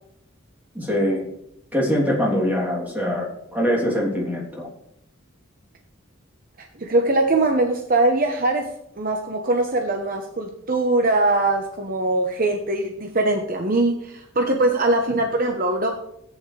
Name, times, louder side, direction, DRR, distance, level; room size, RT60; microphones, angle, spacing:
voice 1, 0.7-1.2 1.7-4.7, equal, 10° right, -4 dB, 3.2 m, -23 dB
voice 2, 6.8-8.7 9.0-15.9, right 2 dB, 45° right, 3 dB, 1.0 m, -21 dB
14.5 x 9.3 x 3.3 m, 0.76 s
head